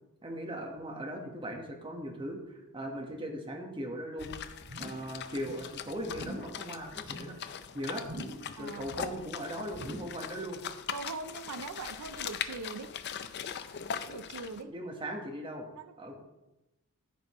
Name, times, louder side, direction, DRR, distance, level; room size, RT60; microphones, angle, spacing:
voice 1, 0.2-4.3 4.8-7.4 7.7-8.1 8.6-10.6 14.6-15.7 16.0-16.2, equal, 20° right, 2 dB, 1.2 m, -39 dB
sound 1, 4.2-14.6, left 8 dB, 50° left, 0.4 m, -41 dB
sound 2, 4.6-5.1 5.4-5.7 6.1-6.6 6.9-7.4 8.0-8.5 8.8-9.3 9.7-10.2 10.6-10.7, right 1 dB, 60° right, 1.8 m, -44 dB
voice 2, 8.5-8.9 10.9-12.9 14.0-14.7 15.7-15.9, right 4 dB, 85° right, 10 dB, 0.5 m, -41 dB
14.0 x 5.2 x 3.0 m, 0.99 s
head